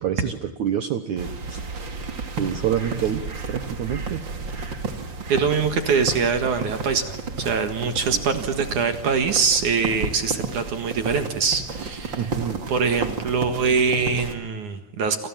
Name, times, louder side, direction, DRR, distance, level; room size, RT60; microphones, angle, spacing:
voice 1, 0.0-1.6 2.4-3.2 3.5-4.2 8.3-8.4 12.2-12.6, right 9 dB, 85° right, 9 dB, 1.7 m, -27 dB
sound 1, 1.2-14.4, right 4 dB, 35° right, 2.0 m, -32 dB
voice 2, 5.3-12.3 12.7-15.3, right 5 dB, 55° right, 8 dB, 2.4 m, -23 dB
29.5 x 27.0 x 7.4 m, 0.93 s
omnidirectional pair, 5.4 m